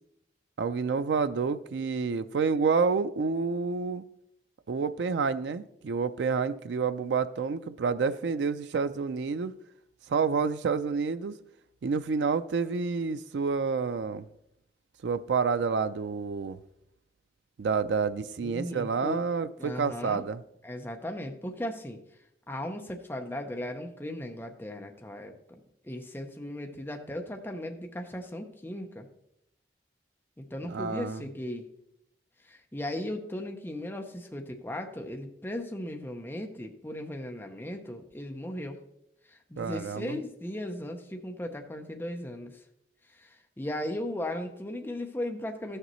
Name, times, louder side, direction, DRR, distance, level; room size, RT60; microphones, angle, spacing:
voice 1, 0.6-4.0 4.7-9.5 10.1-11.4 11.8-14.3 15.0-16.6 17.6-20.4 30.7-31.2 39.6-40.2, right 5 dB, 90° right, 0.4 m, -29 dB
voice 2, 18.4-19.2 19.6-20.2 20.6-22.0 22.5-29.1 30.4-31.7 32.4-38.8 39.2-42.6 43.1-45.8, left 1 dB, 10° left, 0.6 m, -37 dB
13.5 x 6.6 x 3.1 m
head